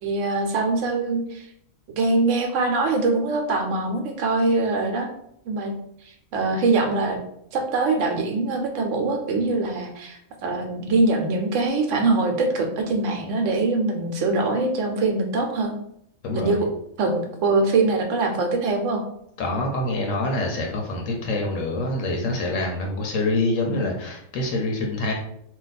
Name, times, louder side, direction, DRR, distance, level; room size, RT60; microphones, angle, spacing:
voice 1, 0.0-1.5 2.0-5.1 5.5-5.7 6.3-7.2 7.5-15.7 16.3-16.7 17.0-19.0 23.7-23.8, right 3 dB, 70° right, 3 dB, 0.9 m, -23 dB
voice 2, 16.2-16.6 19.4-25.1, left 2 dB, 80° left, 1 dB, 1.0 m, -26 dB
2.5 x 2.2 x 4.0 m, 0.72 s
omnidirectional pair, 1.4 m